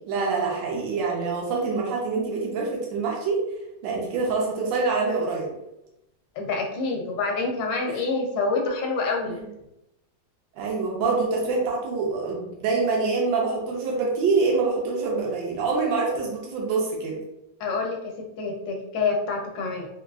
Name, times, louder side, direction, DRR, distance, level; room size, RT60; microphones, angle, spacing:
voice 1, 0.1-3.4 3.8-5.5 9.3-9.4 10.6-17.2, right 4 dB, 85° right, -2 dB, 1.4 m, -25 dB
voice 2, 6.4-9.4 17.6-19.9, left 3 dB, 80° left, 1 dB, 1.3 m, -27 dB
3.8 x 2.3 x 2.3 m, 0.87 s
omnidirectional pair, 2.0 m